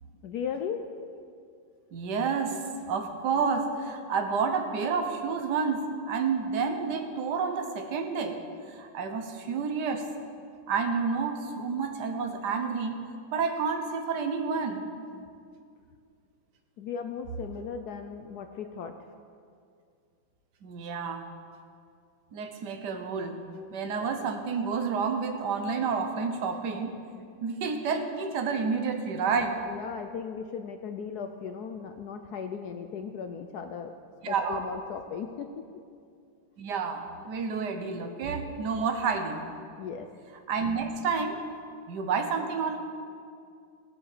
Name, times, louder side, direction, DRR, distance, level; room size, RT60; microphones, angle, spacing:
voice 1, 0.2-0.9 16.8-18.9 29.6-33.9 34.2-35.6 39.8-40.1, left 6 dB, 70° left, 6 dB, 1.0 m, -37 dB
voice 2, 1.9-8.4 8.7-10.1 10.7-13.0 13.3-14.9 20.6-21.3 22.3-23.4 23.7-27.0 27.4-29.6 34.2-34.6 36.6-39.4 40.5-41.4 41.9-42.8, right 5 dB, 60° right, 5 dB, 1.6 m, -29 dB
16.5 x 7.5 x 6.8 m, 2.3 s
omnidirectional pair, 2.2 m